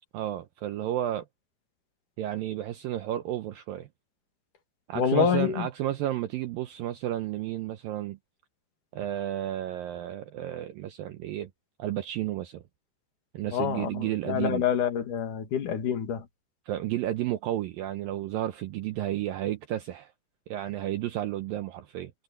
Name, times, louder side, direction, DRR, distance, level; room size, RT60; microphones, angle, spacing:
voice 1, 0.1-1.3 2.2-3.9 4.9-8.2 8.9-11.5 11.8-12.6 13.3-14.6 16.7-20.1 20.5-22.1, right 13 dB, 90° right, 2.0 m, -32 dB
voice 2, 4.9-5.7 13.5-16.3, left 8 dB, 55° left, 3.0 m, -27 dB
omnidirectional pair, 5.2 m